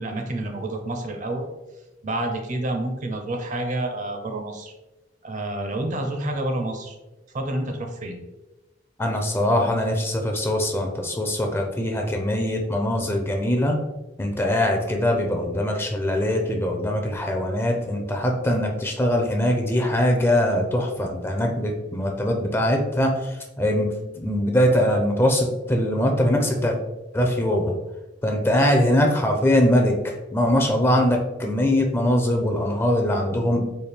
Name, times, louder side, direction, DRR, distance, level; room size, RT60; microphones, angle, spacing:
voice 1, 0.0-1.5 2.0-4.7 5.2-7.0 7.3-8.2, right 1 dB, 45° right, 5 dB, 0.6 m, -28 dB
voice 2, 9.0-13.8 14.2-23.9 24.2-26.8 27.1-27.7 28.2-33.6, left 1 dB, 15° left, 2 dB, 0.4 m, -22 dB
4.2 x 2.2 x 3.3 m, 1.0 s
head